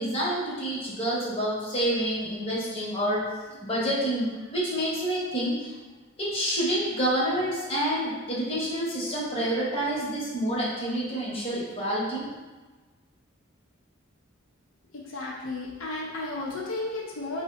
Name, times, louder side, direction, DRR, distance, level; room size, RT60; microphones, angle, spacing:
voice 1, 0.0-3.2 3.6-5.7 6.2-12.3, right 1 dB, 30° left, -7 dB, 0.8 m, -28 dB
voice 2, 15.1-17.4, left 2 dB, 75° left, -3 dB, 0.5 m, -33 dB
2.7 x 2.1 x 4.0 m, 1.3 s
head